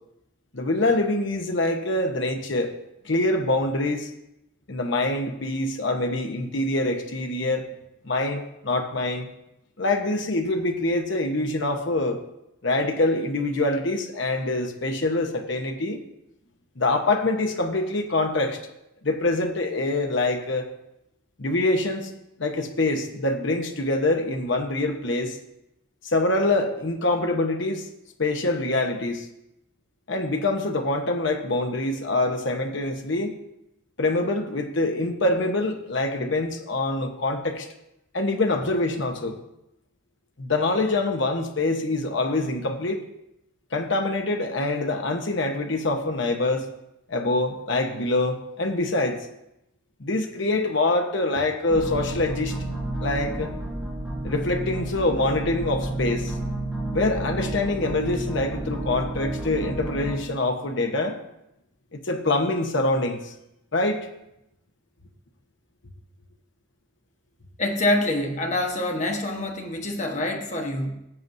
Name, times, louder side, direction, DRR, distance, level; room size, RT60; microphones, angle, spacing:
voice 1, 0.5-2.7 3.0-4.1 4.7-7.7 8.0-9.3 9.8-12.2 12.6-16.0 16.8-18.6 19.0-20.7 21.4-22.1 22.4-25.4 26.0-27.9 28.2-29.3 30.1-33.4 34.0-37.7 38.1-39.4 40.4-43.0 43.7-46.7 47.1-49.3 50.0-52.6 53.0-53.5 54.2-56.4 56.9-61.2 61.9-63.3 63.7-64.1, left 2 dB, 60° left, 4 dB, 1.0 m, -25 dB
sound 1, 51.7-60.2, right 1 dB, 10° right, 2.5 m, -31 dB
voice 2, 67.6-70.9, left 1 dB, 35° left, 2 dB, 1.2 m, -26 dB
16.5 x 7.6 x 2.7 m, 0.86 s
head